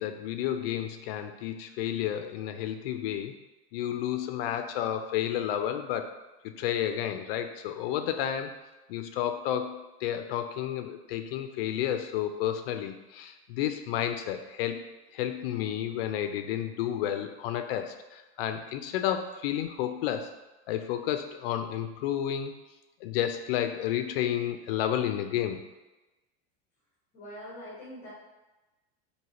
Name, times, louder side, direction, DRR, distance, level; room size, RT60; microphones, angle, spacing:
voice 1, 0.0-3.3 3.7-6.1 6.4-8.5 8.9-14.8 15.1-20.3 20.7-22.5 23.0-25.6, left 10 dB, 65° left, 7 dB, 0.5 m, -31 dB
voice 2, 27.1-28.1, equal, 30° left, -7 dB, 1.0 m, -43 dB
4.5 x 2.8 x 2.9 m, 1.1 s
supercardioid pair, 175°, 32 cm